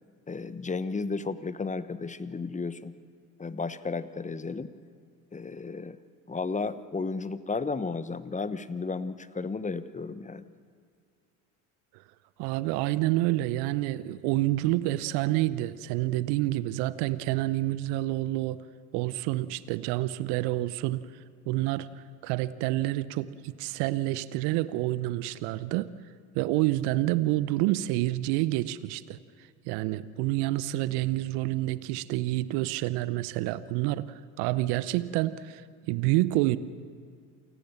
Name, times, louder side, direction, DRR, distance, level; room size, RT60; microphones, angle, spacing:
voice 1, 0.3-3.0 3.4-4.7 5.3-6.0 6.3-10.4, left 4 dB, 15° left, 14 dB, 1.1 m, -33 dB
voice 2, 12.4-18.6 18.9-21.1 21.5-25.9 26.3-29.2 29.7-35.6 35.9-36.6, right 17 dB, 60° right, 16 dB, 0.9 m, -28 dB
28.5 x 18.5 x 7.2 m, 2.1 s
hypercardioid pair, 65°, 45 cm